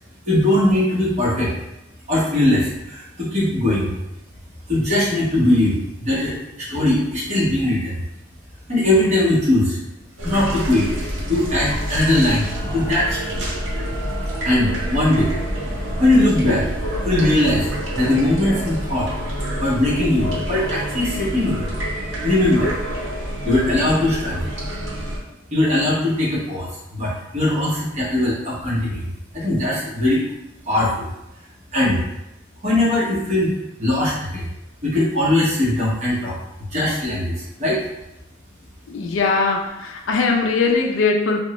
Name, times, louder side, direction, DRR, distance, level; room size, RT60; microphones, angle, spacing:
voice 1, 0.2-1.5 2.1-3.9 4.7-7.9 8.7-9.8 10.2-10.9 11.3-13.4 14.4-15.3 16.0-16.7 17.0-19.1 19.6-21.6 22.2-22.7 23.4-24.5 25.5-29.0 29.3-30.3 30.6-31.1 31.7-32.0 32.6-33.5 33.8-34.5 34.8-36.3 36.7-37.8, left 1 dB, 35° right, -7 dB, 0.9 m, -20 dB
sound 1, 10.2-25.2, equal, 75° right, 0.8 m, -27 dB
voice 2, 38.9-41.4, left 4 dB, 70° left, 3 dB, 0.4 m, -20 dB
3.4 x 2.1 x 2.9 m, 0.90 s
head